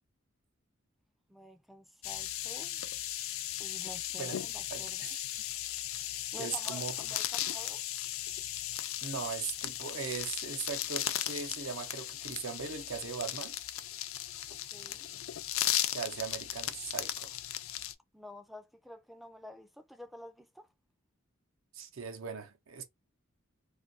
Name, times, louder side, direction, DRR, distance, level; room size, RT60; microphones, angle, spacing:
voice 1, 1.3-2.8 3.6-5.1 6.3-7.8 14.7-15.1 18.1-20.7, equal, ahead, 0.4 m, -50 dB
sound 1, 2.0-17.9, left 12 dB, 85° left, 0.4 m, -37 dB
voice 2, 4.7-5.2 6.4-6.9 9.0-13.5 15.9-17.4 21.7-22.8, right 6 dB, 80° right, 0.7 m, -39 dB
2.6 x 2.4 x 3.9 m
head